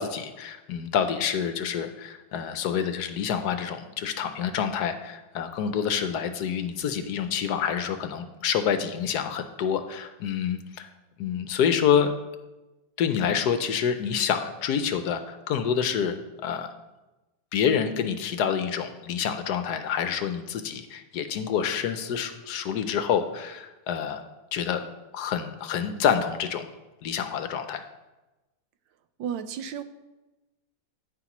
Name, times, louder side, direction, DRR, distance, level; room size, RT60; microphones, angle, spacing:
voice 1, 0.0-10.9 11.2-12.1 13.0-16.2 16.4-16.7 17.5-24.2 24.5-24.8 25.1-26.7 27.0-27.8, left 8 dB, 70° left, 9 dB, 1.1 m, -27 dB
voice 2, 29.2-29.8, right 8 dB, 90° right, 10 dB, 1.4 m, -32 dB
9.8 x 9.7 x 3.0 m, 1.1 s
omnidirectional pair, 1.9 m